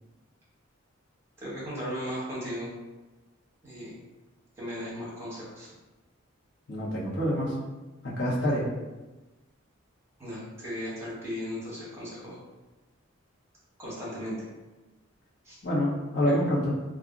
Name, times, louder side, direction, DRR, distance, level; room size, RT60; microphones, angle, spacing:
voice 1, 1.4-2.7 3.6-4.0 4.6-5.7 10.2-12.4 13.8-14.4 15.4-15.6 16.2-16.3, equal, 10° right, -8 dB, 1.0 m, -36 dB
voice 2, 6.7-7.5 8.0-8.6 15.6-16.7, equal, 65° left, -6 dB, 0.9 m, -26 dB
2.4 x 2.1 x 3.6 m, 1.1 s
head